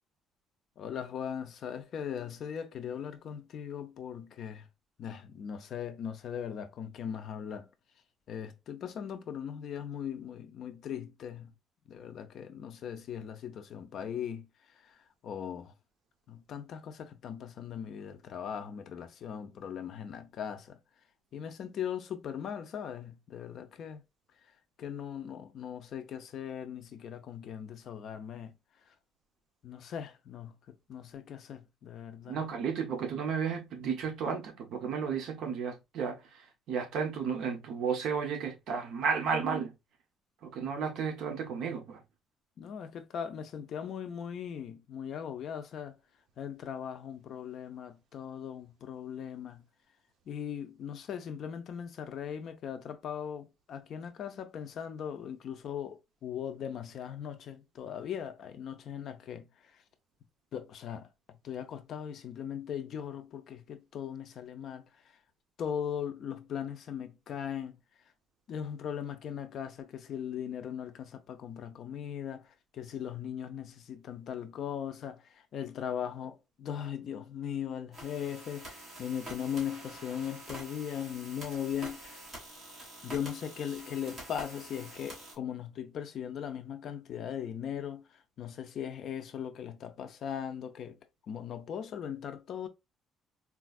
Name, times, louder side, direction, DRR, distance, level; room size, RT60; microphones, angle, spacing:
voice 1, 0.8-4.7 5.0-7.7 8.3-11.5 11.9-14.5 14.8-15.0 15.2-15.7 16.3-20.8 21.3-24.0 24.8-28.5 29.6-32.4 42.6-46.0 46.4-49.6 50.3-59.8 60.5-61.1 61.4-64.9 65.6-67.7 68.5-82.2 83.0-91.0 91.3-92.7, left 8 dB, 45° left, 0.4 m, -39 dB
voice 2, 32.3-36.2 36.7-39.7 40.4-42.0, right 6 dB, 55° right, 0.7 m, -33 dB
sound 1, 77.9-85.3, right 1 dB, 20° right, 1.6 m, -47 dB
4.1 x 2.3 x 2.3 m
cardioid pair, 175°, 0 cm